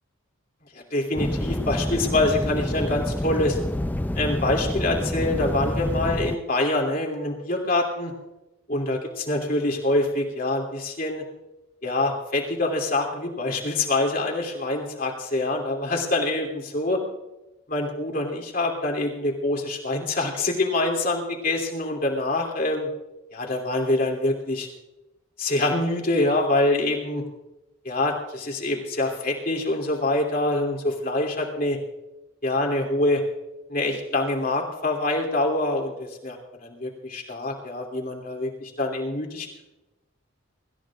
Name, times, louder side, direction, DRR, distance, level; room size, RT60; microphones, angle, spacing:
voice 1, 0.9-3.6 4.1-8.1 8.7-11.2 11.8-17.0 17.7-22.9 23.3-24.7 25.4-27.2 27.8-31.8 32.4-33.2 33.7-39.6, left 2 dB, 45° left, 0 dB, 2.8 m, -25 dB
sound 1, 1.2-6.4, left 1 dB, 10° left, 0.4 m, -28 dB
25.0 x 14.0 x 2.5 m, 0.97 s
head